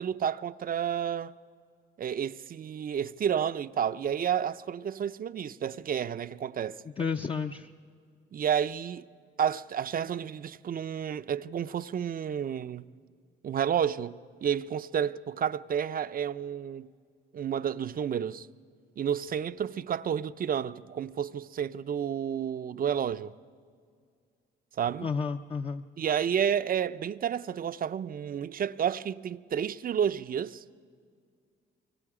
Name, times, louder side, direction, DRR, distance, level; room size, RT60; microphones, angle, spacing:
voice 1, 0.0-1.3 2.0-6.8 8.3-9.0 9.4-12.8 13.4-16.9 17.3-18.5 19.0-23.3 24.8-25.1 26.0-30.6, right 8 dB, 45° right, 0.6 m, -30 dB
voice 2, 7.0-7.7 25.0-25.8, left 5 dB, 25° left, 0.6 m, -31 dB
24.5 x 24.0 x 4.9 m
cardioid pair, 90°, 20 cm